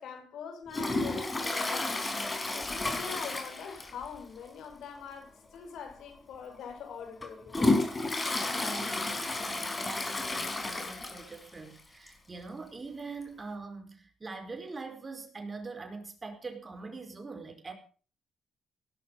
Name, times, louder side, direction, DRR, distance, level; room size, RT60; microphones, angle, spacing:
voice 1, 0.0-2.1 2.5-7.6, left 7 dB, 75° left, 5.4 m, -43 dB
Toilet flush, 0.7-4.2 4.4-4.5 5.0-5.1 5.9-6.0 6.6-11.5 11.8-11.9 12.1-12.2 13.2-13.3, left 2 dB, 25° left, 4.8 m, -31 dB
voice 2, 8.6-17.7, right 3 dB, 30° right, 4.9 m, -43 dB
18.0 x 11.5 x 5.4 m
cardioid pair, 90°, 0 cm